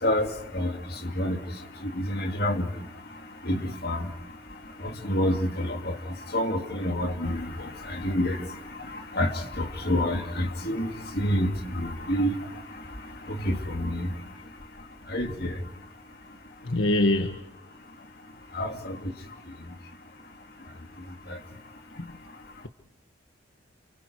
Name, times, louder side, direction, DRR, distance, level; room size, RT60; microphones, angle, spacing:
voice 1, 0.0-1.4 1.8-2.7 3.4-4.1 4.8-12.5 13.3-14.1 15.1-15.6 18.5-19.1 21.3-21.4, left 1 dB, 50° left, 2.5 m, -28 dB
voice 2, 16.6-17.4 22.0-22.1, left 1 dB, 70° left, 1.4 m, -23 dB
29.5 x 29.0 x 4.7 m
head